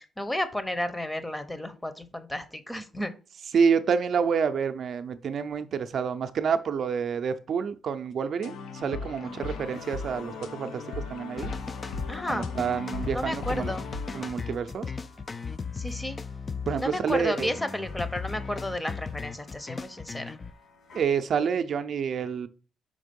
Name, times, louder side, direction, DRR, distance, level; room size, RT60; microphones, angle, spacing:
voice 1, 0.0-3.1 9.2-9.5 12.1-12.5 13.1-13.9 15.7-16.2 16.8-20.4, left 1 dB, 10° left, 12 dB, 0.8 m, -32 dB
voice 2, 3.5-11.5 12.3-13.7 14.1-14.9 16.7-17.5 20.9-22.5, right 6 dB, 55° right, 9 dB, 0.5 m, -28 dB
sound 1, 8.4-14.3, left 4 dB, 75° left, 0.7 m, -38 dB
sound 2, 9.3-21.0, left 3 dB, 60° left, 2.6 m, -53 dB
sound 3, 11.4-20.5, left 5 dB, 30° left, 0.3 m, -37 dB
5.2 x 3.6 x 5.2 m, 0.35 s
cardioid pair, 90°, 0 cm